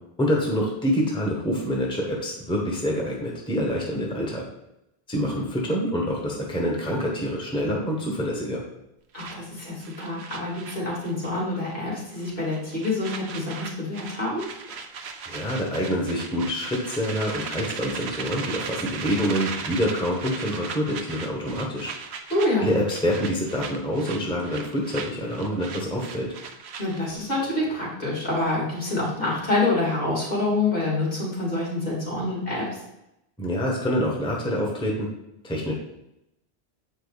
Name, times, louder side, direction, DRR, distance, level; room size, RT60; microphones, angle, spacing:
voice 1, 0.2-4.4 5.1-8.6 15.3-21.9 22.6-26.3 33.4-35.1 35.4-35.7, equal, 5° left, -2 dB, 1.1 m, -26 dB
voice 2, 3.9-4.2 9.1-14.4 22.3-22.7 26.8-32.8, left 2 dB, 55° left, -5 dB, 3.0 m, -27 dB
sound 1, 9.2-11.4 11.7-11.9 12.2-27.1, right 5 dB, 85° right, 1.0 m, -37 dB
7.7 x 5.1 x 4.1 m, 0.86 s
omnidirectional pair, 1.1 m